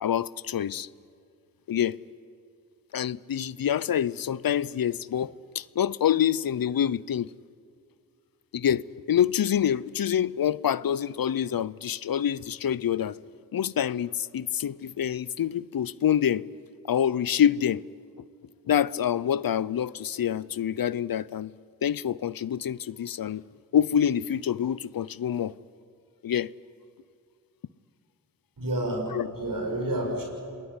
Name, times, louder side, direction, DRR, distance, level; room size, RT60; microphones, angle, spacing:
voice 1, 0.0-0.9 1.7-2.0 2.9-7.3 8.5-13.2 13.5-16.5 16.9-17.8 18.7-21.5 21.8-23.4 23.7-25.5 26.2-26.5 29.1-29.3, left 9 dB, 75° left, 0.6 m, -26 dB
voice 2, 28.6-30.2, right 1 dB, 65° right, 7.3 m, -29 dB
27.0 x 21.0 x 9.6 m
cardioid pair, 50°, 36 cm